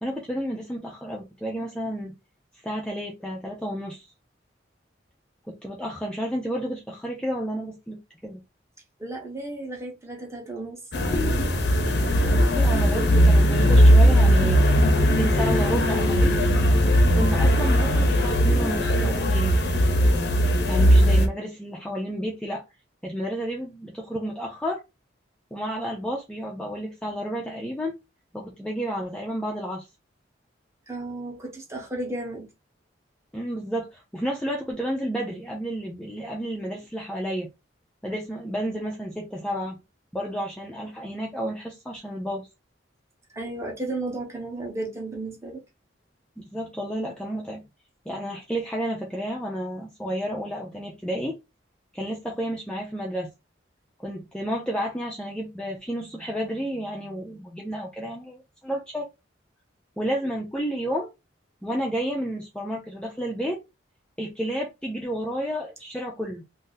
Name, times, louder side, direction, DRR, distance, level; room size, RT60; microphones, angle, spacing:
voice 1, 0.0-2.1 2.6-4.1 5.5-8.4 12.3-14.6 15.1-16.4 17.1-19.6 20.7-22.6 23.0-24.8 25.5-27.9 28.3-29.9 33.3-37.5 38.0-39.8 40.1-42.5 46.5-47.6 48.1-51.3 51.9-53.3 54.0-59.1 60.0-61.1 61.6-63.6 64.2-66.4, equal, 5° left, 0.5 m, -31 dB
voice 2, 9.0-10.8 30.9-32.5 43.3-45.6, right 2 dB, 15° right, 1.0 m, -33 dB
sound 1, 10.9-21.3, equal, 60° left, 0.7 m, -19 dB
2.7 x 2.6 x 3.9 m
head